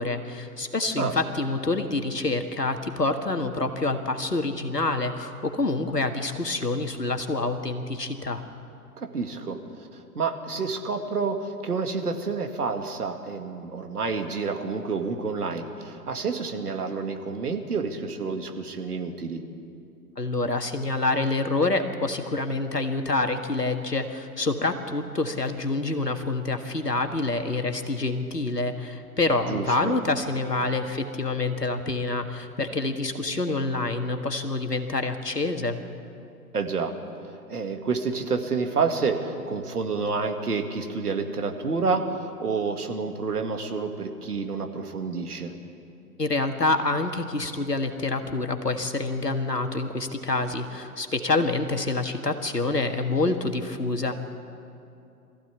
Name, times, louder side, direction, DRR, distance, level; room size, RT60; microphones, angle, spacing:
voice 1, 0.0-8.4 20.2-35.8 46.2-54.1, left 2 dB, 85° left, 6 dB, 1.8 m, -27 dB
voice 2, 9.0-9.6 9.9-19.4 29.4-29.9 36.5-36.9 37.5-45.5, right 4 dB, 70° right, 5 dB, 2.2 m, -29 dB
23.5 x 15.0 x 8.3 m, 2.6 s
figure-of-eight pair, 115°, 47 cm